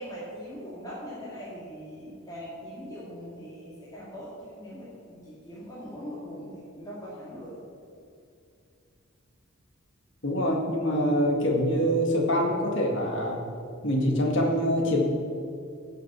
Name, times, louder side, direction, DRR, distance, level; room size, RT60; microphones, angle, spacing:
voice 1, 0.0-7.6, equal, 20° left, -9 dB, 2.4 m, -41 dB
voice 2, 10.2-13.5 13.8-15.0, equal, 55° left, 0 dB, 2.0 m, -25 dB
16.0 x 6.6 x 6.2 m, 2.5 s
head